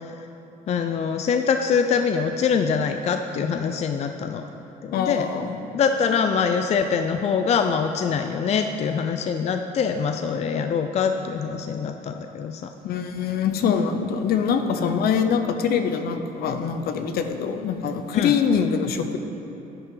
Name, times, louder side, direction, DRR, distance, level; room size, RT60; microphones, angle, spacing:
voice 1, 0.7-4.4 4.8-5.3 5.7-12.7 14.8-14.9 18.1-18.3, left 6 dB, 40° left, 6 dB, 0.4 m, -24 dB
voice 2, 4.9-5.5 12.8-19.2, left 6 dB, 65° left, 7 dB, 0.8 m, -24 dB
10.5 x 10.5 x 3.8 m, 3.0 s
cardioid pair, 110°, 17 cm